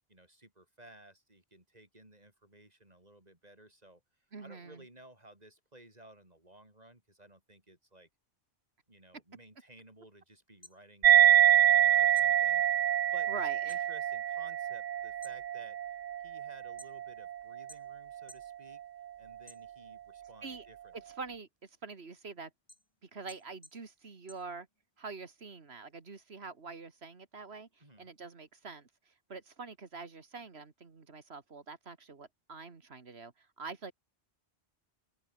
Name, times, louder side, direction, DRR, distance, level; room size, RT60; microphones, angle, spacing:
voice 1, 0.1-8.1 8.9-16.0 16.2-18.8 19.2-21.0 27.8-28.1, right 1 dB, 40° right, 6.0 m, -57 dB
voice 2, 4.3-4.9 11.7-12.1 13.3-13.8 20.4-20.7 20.9-22.5 23.0-24.7 25.0-33.9, right 4 dB, 75° right, 2.2 m, -45 dB
sound 1, 10.4-11.8 12.1-13.9 14.2-14.7 15.1-17.3 17.7-18.5 18.9-20.1 20.6-25.1, left 1 dB, 25° left, 6.2 m, -58 dB
sound 2, 11.0-17.9, right 11 dB, 60° right, 0.5 m, -26 dB
open air
omnidirectional pair, 1.1 m